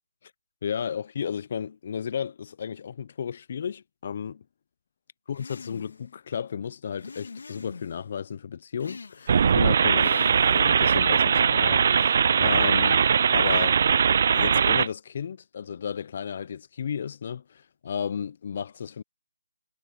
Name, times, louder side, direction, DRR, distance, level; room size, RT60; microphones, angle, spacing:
voice 1, 0.6-4.4 5.3-10.2 10.5-13.0 13.3-13.8 14.3-19.0, left 7 dB, 35° left, 0.6 m, -33 dB
sound 1, 5.3-6.1 7.0-8.0 8.8-9.5 10.0-10.8, left 4 dB, 60° left, 2.4 m, -43 dB
sound 2, 9.3-14.9, right 7 dB, 40° right, 0.4 m, -20 dB
figure-of-eight pair, 165°, 0 cm